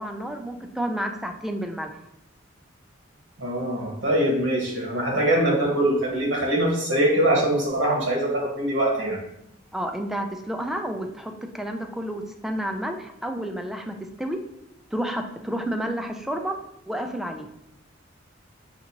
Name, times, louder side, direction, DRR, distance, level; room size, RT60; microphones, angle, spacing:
voice 1, 0.0-2.0 9.7-14.4 14.9-16.6 16.9-17.5, right 1 dB, ahead, 4 dB, 0.3 m, -30 dB
voice 2, 3.4-9.2, right 1 dB, 70° right, -2 dB, 1.4 m, -23 dB
5.8 x 2.6 x 2.8 m, 0.80 s
head